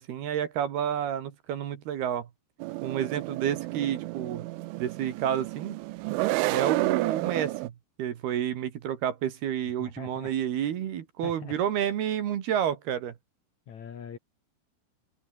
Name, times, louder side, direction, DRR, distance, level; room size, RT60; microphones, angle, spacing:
voice 1, 0.0-2.3 2.8-4.5 4.8-5.8 6.5-7.7 8.0-13.2, right 9 dB, 60° right, 3.4 m, -30 dB
sound 1, 2.6-7.7, right 21 dB, 80° right, 3.1 m, -31 dB
voice 2, 9.8-10.3 11.2-11.6 13.7-14.2, left 7 dB, 50° left, 2.7 m, -42 dB
open air
omnidirectional pair, 5.7 m